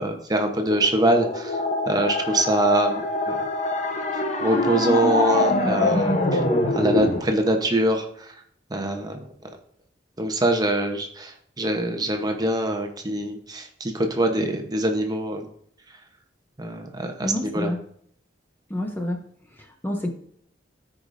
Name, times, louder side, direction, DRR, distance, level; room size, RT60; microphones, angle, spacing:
voice 1, 0.0-1.6 1.9-3.3 4.1-6.4 6.7-8.3 8.7-9.2 10.2-11.3 11.6-15.5 16.6-17.7, right 1 dB, 20° right, 4 dB, 0.9 m, -24 dB
sound 1, 0.7-7.2, left 2 dB, 40° left, 0.9 m, -24 dB
voice 2, 17.2-17.8 18.7-19.2 19.6-20.1, left 1 dB, 10° left, 3 dB, 0.7 m, -28 dB
14.5 x 4.9 x 2.6 m, 0.65 s
head